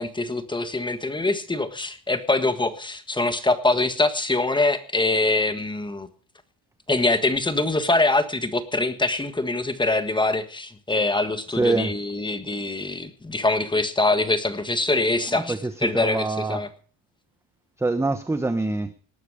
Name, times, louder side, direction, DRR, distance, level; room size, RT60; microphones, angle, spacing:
voice 1, 0.0-6.1 6.9-15.5 15.8-16.7, left 2 dB, 10° left, 10 dB, 1.5 m, -24 dB
voice 2, 11.6-11.9 15.3-16.6 17.8-18.9, right 2 dB, 5° right, 10 dB, 0.8 m, -25 dB
19.0 x 12.0 x 5.0 m, 0.40 s
cardioid pair, 150°, 45 cm